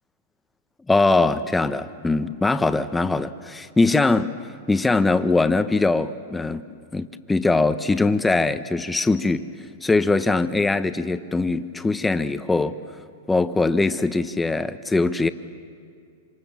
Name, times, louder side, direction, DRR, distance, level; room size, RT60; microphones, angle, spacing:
voice 1, 0.9-4.3 4.7-6.7 6.9-9.5 9.8-12.8 13.3-15.3, left 3 dB, 10° left, 11 dB, 1.0 m, -21 dB
26.5 x 26.5 x 7.3 m, 2.3 s
hypercardioid pair, 115°, 0 cm